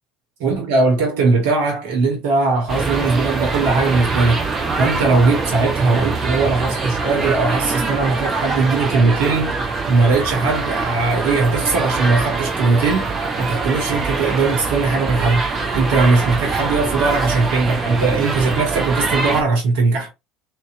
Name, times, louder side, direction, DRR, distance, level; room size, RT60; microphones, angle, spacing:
voice 1, 0.4-4.4 4.8-20.1, right 3 dB, 70° right, 1.1 m, -19 dB
sound 1, 2.7-19.4, right 4 dB, 35° right, 0.8 m, -23 dB
2.7 x 2.2 x 2.5 m
hypercardioid pair, 65°, 0 cm